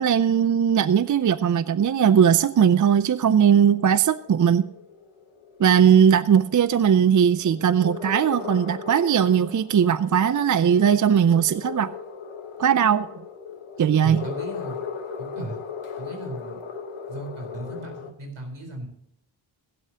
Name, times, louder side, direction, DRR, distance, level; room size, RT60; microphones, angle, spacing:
voice 1, 0.0-4.7 5.6-11.9 12.6-13.1 13.8-14.2, right 8 dB, 40° right, 0.5 m, -19 dB
sound 1, 0.7-18.1, left 6 dB, 85° left, 1.4 m, -38 dB
voice 2, 14.0-14.8 15.3-15.6 16.0-16.6 17.1-18.9, right 1 dB, 75° right, 4.2 m, -36 dB
16.0 x 11.0 x 2.9 m
wide cardioid pair, 75°, 49 cm